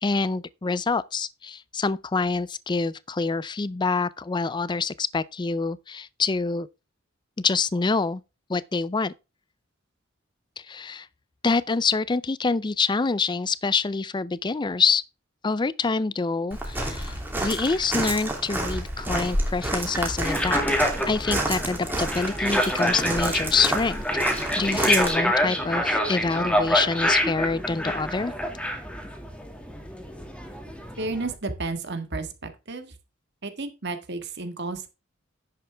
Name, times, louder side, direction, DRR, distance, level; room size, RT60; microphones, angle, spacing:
voice 1, 0.0-6.7 7.4-8.2 8.5-9.1 10.6-11.1 11.4-15.0 15.4-17.2 17.4-20.6 21.0-24.2 24.6-28.3, left 4 dB, 20° left, 0.4 m, -26 dB
Walk footsteps, 16.5-25.1, right 1 dB, 10° right, 2.7 m, -29 dB
sound 1, 20.2-31.3, equal, 5° left, 2.0 m, -27 dB
voice 2, 31.0-33.0 33.4-34.9, right 3 dB, 55° right, 1.6 m, -32 dB
10.5 x 7.9 x 3.4 m
head